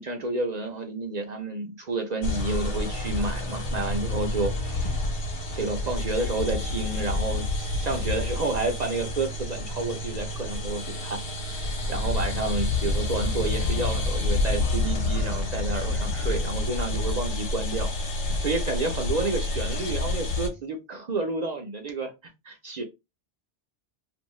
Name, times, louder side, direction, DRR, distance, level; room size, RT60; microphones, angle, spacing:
voice 1, 0.0-5.0 5.5-22.1 22.4-22.8, right 3 dB, 55° right, 0.5 m, -30 dB
sound 1, 2.2-20.5, left 2 dB, 80° left, 1.1 m, -28 dB
2.7 x 2.5 x 3.0 m
omnidirectional pair, 1.2 m